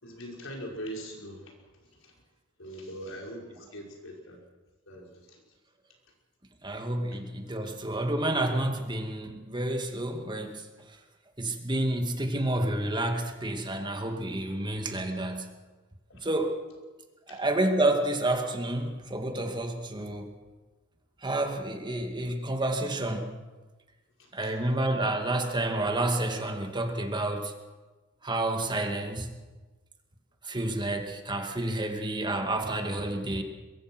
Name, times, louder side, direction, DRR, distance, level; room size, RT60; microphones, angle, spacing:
voice 1, 0.0-1.5 2.0-2.2 2.6-4.4 4.9-5.4 16.1-16.3 17.3-17.4 24.2-24.6, equal, 75° left, 0 dB, 5.2 m, -42 dB
voice 2, 6.6-10.5 11.4-15.5 16.2-16.5 17.3-20.3 21.2-23.3 24.3-27.5 28.2-29.3 30.4-33.4, right 1 dB, 25° right, 4 dB, 2.2 m, -29 dB
23.0 x 22.5 x 6.2 m, 1.3 s
head